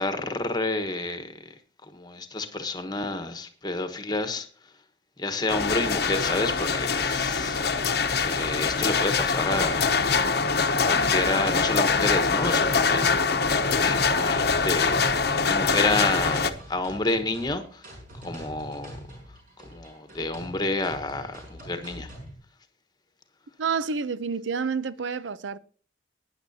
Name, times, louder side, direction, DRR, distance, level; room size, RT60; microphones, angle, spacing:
voice 1, 0.0-1.3 1.9-4.5 5.2-7.6 8.2-9.9 10.8-13.4 13.8-15.0 15.4-17.8 18.2-18.9 19.7-22.1, left 2 dB, 20° left, 1.2 m, -29 dB
sound 1, 5.5-16.5, left 5 dB, 55° left, 0.9 m, -24 dB
sound 2, 14.3-22.3, equal, 45° right, 5.8 m, -44 dB
voice 2, 23.6-25.6, right 5 dB, 80° right, 0.6 m, -29 dB
19.5 x 10.0 x 2.8 m
head